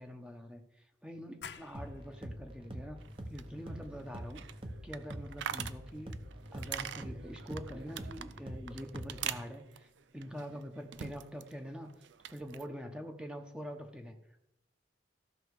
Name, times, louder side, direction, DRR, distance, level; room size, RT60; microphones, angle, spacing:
voice 1, 0.0-3.0 3.3-4.4 4.8-6.1 6.5-11.9 12.3-14.1, equal, 5° right, 4 dB, 1.0 m, -45 dB
sound 1, 1.4-6.8, left 7 dB, 60° left, 0.6 m, -55 dB
sound 2, 1.7-9.4, equal, 30° right, 1.1 m, -45 dB
sound 3, 3.0-11.5 11.8-12.7, right 9 dB, 75° right, 0.5 m, -44 dB
15.0 x 6.1 x 4.8 m, 0.86 s
head